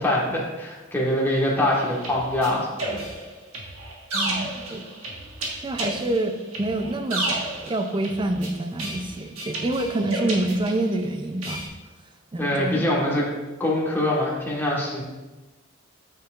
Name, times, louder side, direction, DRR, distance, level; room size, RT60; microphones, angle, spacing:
voice 1, 0.0-3.0 12.4-13.3 13.6-15.0, left 1 dB, 10° left, -5 dB, 1.4 m, -24 dB
sound 1, 1.7-11.0 11.4-11.7, right 2 dB, 85° right, 1.5 m, -32 dB
voice 2, 4.1-4.8 5.6-11.6 12.3-12.8, right 1 dB, 25° right, 7 dB, 0.5 m, -27 dB
8.3 x 6.6 x 2.5 m, 1.2 s
head